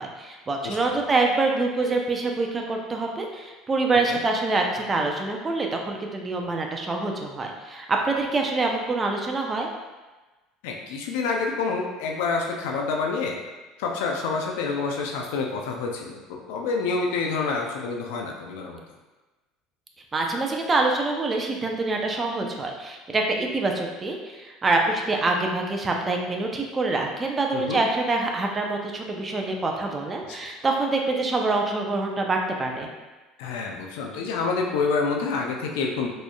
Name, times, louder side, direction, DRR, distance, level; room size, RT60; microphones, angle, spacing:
voice 1, 0.0-9.7 20.1-32.9, right 3 dB, 25° right, 1 dB, 0.6 m, -25 dB
voice 2, 0.6-1.0 4.1-4.2 10.6-13.4 13.8-18.8 27.5-27.8 33.4-36.1, left 4 dB, 80° left, 1 dB, 0.5 m, -28 dB
4.0 x 3.1 x 2.3 m, 1.2 s
supercardioid pair, 90°, 0 cm